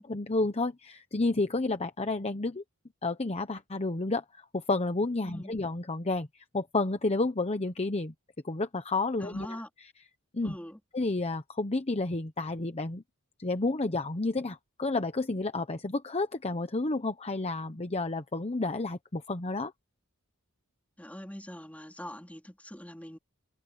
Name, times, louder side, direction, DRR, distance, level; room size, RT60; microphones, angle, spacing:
voice 1, 0.0-2.6 3.0-8.1 8.4-9.9 10.3-10.6 10.9-13.0 13.4-19.7, left 2 dB, 30° left, 1.0 m, -31 dB
voice 2, 9.2-9.7 10.4-10.8 21.0-23.2, equal, 5° left, 3.8 m, -43 dB
open air
head